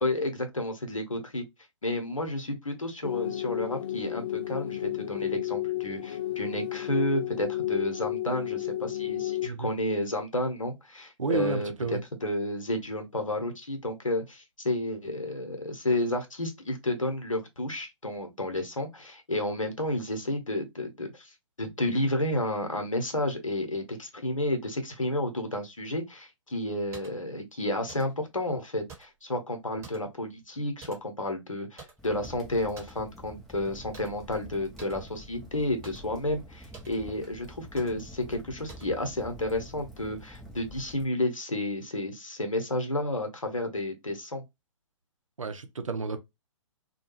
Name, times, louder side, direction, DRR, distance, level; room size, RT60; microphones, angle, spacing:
voice 1, 0.0-1.4 1.8-11.7 12.2-44.4, left 1 dB, 85° left, 0.9 m, -31 dB
sound 1, 3.0-9.5, left 14 dB, 45° left, 0.4 m, -32 dB
voice 2, 11.2-12.0 45.4-46.2, right 4 dB, 80° right, 0.6 m, -31 dB
sound 2, 26.9-27.2 27.9-28.2 28.9-29.2 29.8-30.2 30.8-31.2 31.8-32.1 32.8-33.0 33.9-34.3 34.8-35.0 35.8-36.1 36.7-37.0 37.8-38.1 38.7-39.0, right 4 dB, 15° right, 1.1 m, -49 dB
Crackle, 32.0-41.1, equal, ahead, 0.6 m, -47 dB
2.3 x 2.2 x 3.0 m
figure-of-eight pair, 125°, 17 cm